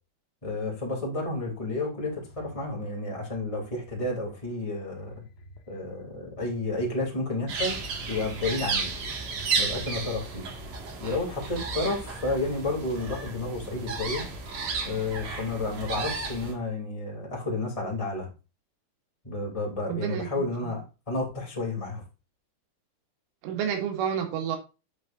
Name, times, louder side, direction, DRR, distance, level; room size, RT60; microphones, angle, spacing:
voice 1, 0.4-5.2 5.7-7.7 8.1-8.9 9.6-10.5 11.0-14.2 14.8-18.3 19.2-22.0, left 2 dB, 10° left, -2 dB, 1.8 m, -31 dB
sound 1, 2.0-4.1 4.5-5.6 6.0-8.6 8.9-10.4, equal, 85° left, 1.5 m, -50 dB
sound 2, 7.5-16.5, right 4 dB, 50° right, 2.5 m, -33 dB
voice 2, 19.9-20.5 23.4-24.6, right 8 dB, 85° right, 4 dB, 4.3 m, -30 dB
8.4 x 8.3 x 2.6 m, 0.29 s
omnidirectional pair, 5.5 m